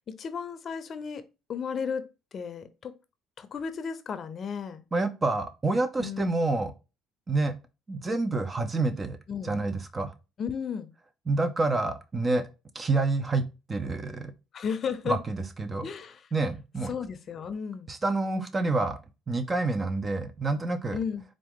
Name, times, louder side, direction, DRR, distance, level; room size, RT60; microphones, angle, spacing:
voice 1, 0.1-1.2 1.5-2.1 2.3-2.9 3.4-4.8 6.0-6.4 9.3-9.5 10.4-10.9 14.5-15.2 15.8-16.3 16.9-17.9 20.9-21.2, left 6 dB, 50° left, 0.6 m, -34 dB
voice 2, 4.9-6.7 7.3-7.5 7.9-9.2 9.4-10.1 11.3-12.5 12.7-14.3 15.1-15.9 16.3-16.9 17.9-19.0 19.3-21.0, right 3 dB, 30° right, 0.7 m, -28 dB
4.4 x 2.5 x 3.6 m
supercardioid pair, 80°, 0 cm